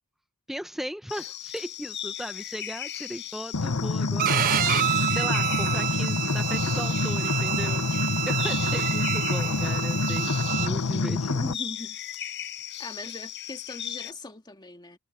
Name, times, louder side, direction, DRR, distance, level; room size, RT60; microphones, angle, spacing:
voice 1, 0.5-11.6, equal, ahead, 1.1 m, -37 dB
sound 1, 1.1-14.1, left 11 dB, 55° left, 5.4 m, -37 dB
sound 2, 3.5-11.5, left 3 dB, 80° left, 1.0 m, -27 dB
Bowed string instrument, 4.2-10.7, right 12 dB, 40° right, 0.4 m, -28 dB
voice 2, 11.3-12.0 12.2-12.4 12.8-15.0, left 2 dB, 20° left, 2.0 m, -40 dB
head